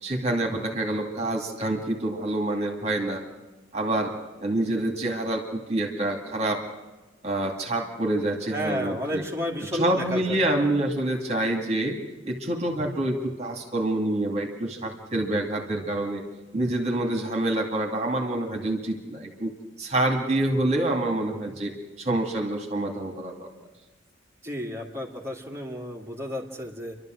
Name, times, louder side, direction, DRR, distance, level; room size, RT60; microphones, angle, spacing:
voice 1, 0.0-3.2 3.7-6.6 7.2-9.2 9.7-12.0 12.3-16.2 16.5-19.5 19.8-23.5, right 1 dB, 35° right, 3 dB, 2.4 m, -27 dB
voice 2, 8.5-10.4 24.4-26.9, equal, 15° right, -1 dB, 2.7 m, -32 dB
29.5 x 12.5 x 7.8 m, 1.2 s
head